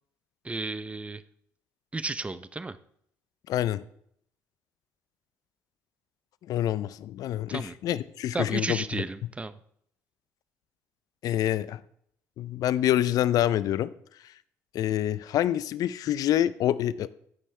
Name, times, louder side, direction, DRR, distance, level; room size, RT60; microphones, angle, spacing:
voice 1, 0.4-1.2 1.9-2.8 7.5-7.8 8.3-9.6, right 3 dB, 20° right, 15 dB, 0.6 m, -33 dB
voice 2, 3.5-3.8 6.5-8.8 11.2-11.8 12.4-13.9 14.7-17.1, left 12 dB, 60° left, 17 dB, 0.5 m, -26 dB
15.0 x 5.5 x 3.2 m, 0.68 s
supercardioid pair, 70°, 7 cm